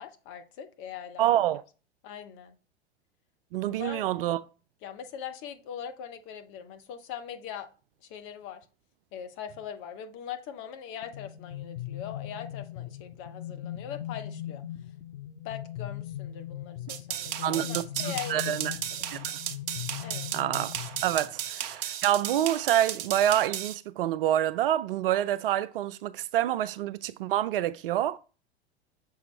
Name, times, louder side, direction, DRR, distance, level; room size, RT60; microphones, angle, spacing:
voice 1, 0.0-1.3 2.0-2.6 3.7-4.1 4.8-7.7 8.0-8.7 9.1-14.6 15.4-19.4 20.0-20.3, left 9 dB, 35° left, 0.9 m, -41 dB
voice 2, 1.2-1.6 3.5-4.4 17.4-18.7 19.1-19.2 20.3-20.7 21.0-28.2, right 12 dB, 55° right, 0.5 m, -27 dB
sound 1, 11.0-21.5, left 12 dB, 80° left, 0.8 m, -40 dB
sound 2, 16.9-23.7, right 10 dB, 40° right, 0.8 m, -35 dB
6.9 x 4.7 x 3.2 m
figure-of-eight pair, 90°, 34 cm